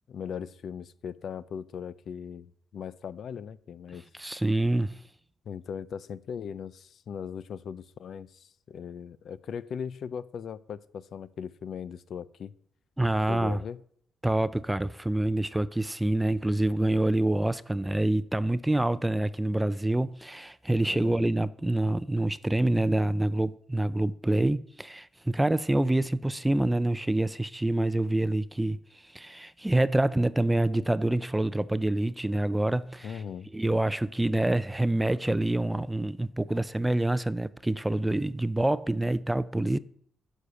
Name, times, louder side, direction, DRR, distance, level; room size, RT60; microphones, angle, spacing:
voice 1, 0.1-4.1 5.5-12.5 13.3-13.8 20.9-21.3 33.0-33.5, left 7 dB, 60° left, 0.5 m, -39 dB
voice 2, 4.2-5.0 13.0-13.6 14.2-28.8 29.1-33.2 33.5-39.8, right 1 dB, 10° right, 0.4 m, -26 dB
9.9 x 6.4 x 6.9 m
cardioid pair, 90°, 0 cm